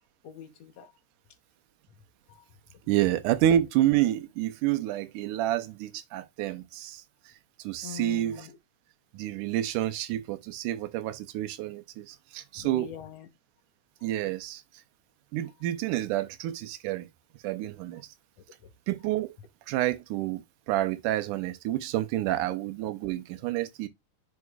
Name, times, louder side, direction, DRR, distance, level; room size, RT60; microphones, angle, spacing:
voice 1, 0.2-0.9 2.3-2.4 7.8-8.6 9.5-9.6 12.6-13.3, left 10 dB, 65° left, 1.8 m, -43 dB
voice 2, 2.9-7.0 7.6-8.5 9.1-12.9 14.0-14.6 15.3-17.1 17.4-18.0 18.9-19.4 19.7-23.9, right 13 dB, 80° right, 2.2 m, -29 dB
9.4 x 5.3 x 2.3 m
omnidirectional pair, 3.7 m